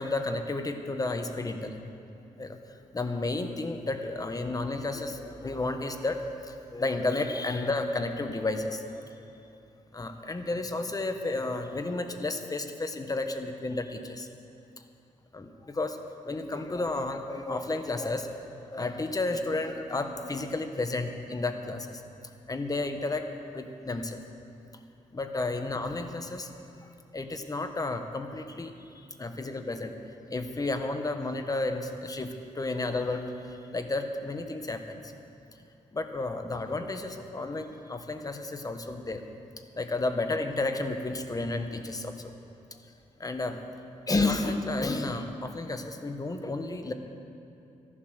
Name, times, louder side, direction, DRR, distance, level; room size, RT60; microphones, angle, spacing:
voice 1, 0.0-1.8 2.4-2.6 2.9-6.2 6.7-9.0 9.9-14.3 15.3-16.0 16.3-18.4 18.7-22.0 22.5-23.2 23.5-24.2 25.1-26.5 27.1-28.7 29.2-30.0 30.3-33.2 33.7-35.0 35.9-39.2 39.8-42.1 43.2-43.6 44.1-46.9, left 2 dB, 30° left, 6 dB, 1.2 m, -32 dB
14.0 x 11.0 x 6.4 m, 2.6 s
cardioid pair, 75°, 13 cm